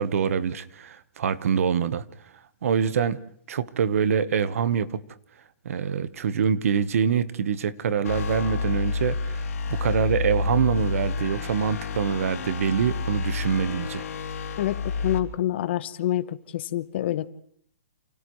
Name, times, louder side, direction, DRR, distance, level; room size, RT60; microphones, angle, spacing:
voice 1, 0.0-2.0 2.6-3.2 3.5-5.0 5.6-9.4 9.7-14.1, right 7 dB, 60° right, 1.1 m, -25 dB
sound 1, 8.0-15.2, left 4 dB, 70° left, 4.2 m, -29 dB
voice 2, 14.6-17.3, left 13 dB, 45° left, 1.0 m, -27 dB
29.0 x 28.5 x 3.2 m
hypercardioid pair, 165°, 8 cm